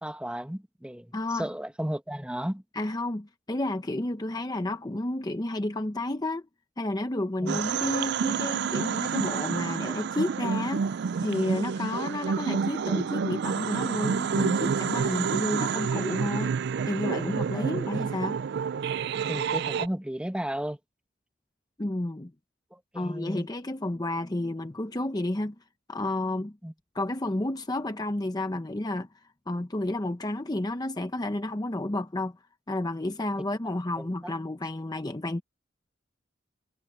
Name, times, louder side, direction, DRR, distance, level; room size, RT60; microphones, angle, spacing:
voice 1, 0.0-2.6 7.4-7.6 17.5-17.7 19.3-20.8 22.7-23.5 26.6-26.7 34.0-34.3, equal, 5° right, 1.4 m, -34 dB
voice 2, 1.1-1.5 2.7-6.4 6.8-10.9 11.2-16.6 16.9-18.4 21.8-22.3 22.9-25.5 25.9-26.6 26.9-29.1 29.5-32.4 32.7-35.4, left 1 dB, 20° left, 0.8 m, -31 dB
sound 1, 7.5-19.9, right 6 dB, 60° right, 0.4 m, -29 dB
head